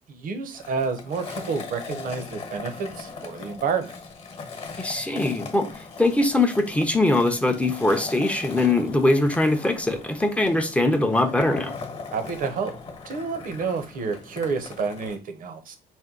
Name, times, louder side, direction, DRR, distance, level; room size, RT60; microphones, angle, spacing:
voice 1, 0.1-3.9 12.1-12.7 13.0-15.8, right 5 dB, 55° right, 0.8 m, -29 dB
Skateboard, 0.5-15.2, left 4 dB, 35° left, 1.1 m, -39 dB
voice 2, 4.8-5.7 6.0-11.7, left 2 dB, 5° left, 0.6 m, -22 dB
4.3 x 2.1 x 3.7 m
cardioid pair, 110°, 17 cm